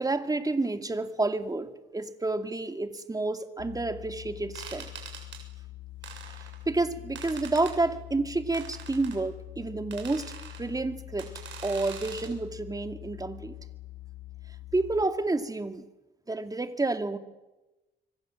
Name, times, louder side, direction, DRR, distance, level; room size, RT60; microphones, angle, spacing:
voice 1, 0.0-4.9 6.4-11.3 11.6-13.6 14.7-15.9 16.3-17.2, right 2 dB, 20° right, 8 dB, 2.4 m, -30 dB
sound 1, 3.6-15.0, left 16 dB, 75° left, 5.4 m, -45 dB
sound 2, 4.5-5.4 6.0-6.6 7.2-7.8 8.5-9.2 9.9-10.6 11.2-12.3, right 7 dB, 65° right, 7.2 m, -43 dB
26.5 x 24.0 x 7.7 m, 1.1 s
cardioid pair, 90°, 20 cm